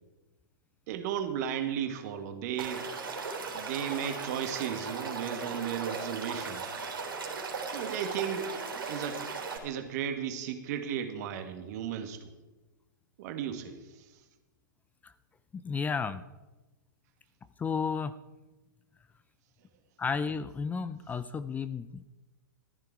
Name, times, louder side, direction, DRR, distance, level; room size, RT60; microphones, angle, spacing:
voice 1, 0.9-2.9 3.5-6.7 7.7-8.5 8.9-9.3 9.6-12.3 13.2-14.0, right 9 dB, 50° right, 8 dB, 1.7 m, -35 dB
Stream / Liquid, 2.6-9.6, right 4 dB, 85° right, 3.4 m, -37 dB
voice 2, 15.5-16.2 17.6-18.1 20.0-22.1, left 5 dB, 15° left, 13 dB, 0.4 m, -32 dB
14.5 x 10.5 x 4.7 m, 1.1 s
hypercardioid pair, 115°, 11 cm